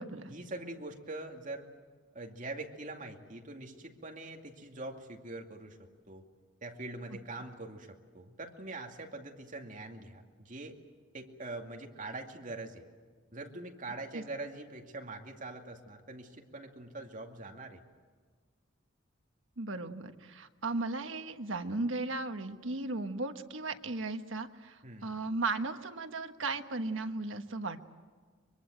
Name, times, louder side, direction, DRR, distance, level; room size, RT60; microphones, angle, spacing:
voice 1, 0.3-1.7 2.1-5.8 6.1-6.2 6.6-10.8 11.1-12.8 13.3-17.8 24.8-25.2, right 2 dB, 40° right, 2 dB, 2.4 m, -43 dB
voice 2, 19.6-27.9, right 3 dB, 75° right, 7 dB, 1.3 m, -36 dB
24.0 x 23.5 x 7.9 m, 1.5 s
head